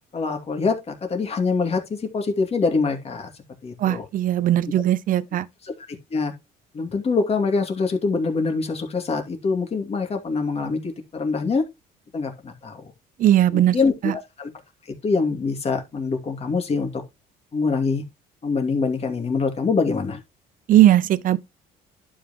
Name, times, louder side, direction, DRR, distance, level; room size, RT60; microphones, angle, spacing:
voice 1, 0.1-3.3 3.6-4.1 5.6-6.3 6.7-11.6 12.1-12.9 13.5-14.5 15.0-17.0 17.5-18.0 18.4-20.2, left 4 dB, 35° left, 2.5 m, -24 dB
voice 2, 3.8-5.5 13.2-13.8 14.0-14.1 20.7-21.4, right 12 dB, 55° right, 0.6 m, -18 dB
11.5 x 5.6 x 3.0 m
cardioid pair, 110°, 17 cm